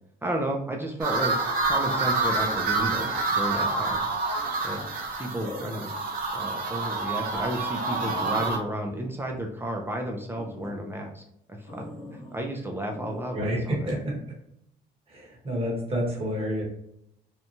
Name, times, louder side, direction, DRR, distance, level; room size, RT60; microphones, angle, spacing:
voice 1, 0.2-1.3 1.6-4.2 4.6-4.8 5.2-5.9 6.3-11.2 11.5-11.8 12.1-13.9, right 1 dB, 15° right, 1 dB, 0.4 m, -32 dB
sound 1, 1.0-8.6, right 3 dB, 60° right, 0.6 m, -27 dB
sound 2, 5.4-6.1 6.6-6.7 7.2-7.3 7.5-7.6 7.9-9.9 10.3-10.8 11.7-12.5 12.9-13.3 13.9-14.1, left 2 dB, 55° left, 1.1 m, -43 dB
voice 2, 13.3-14.0 15.1-16.6, equal, 35° right, -2 dB, 1.1 m, -29 dB
2.8 x 2.1 x 2.6 m, 0.77 s
cardioid pair, 110°, 17 cm